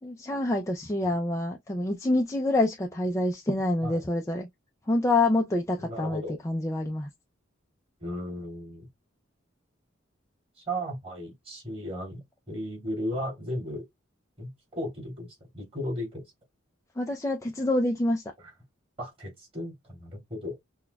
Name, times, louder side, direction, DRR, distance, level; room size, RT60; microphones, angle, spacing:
voice 1, 0.0-4.5 4.9-7.1 17.0-18.2, left 2 dB, 15° left, 0.4 m, -27 dB
voice 2, 5.8-6.4 8.0-8.9 10.6-13.8 14.4-16.2 18.4-18.5 19.0-20.6, equal, 30° right, 2.9 m, -35 dB
5.9 x 2.3 x 2.2 m
head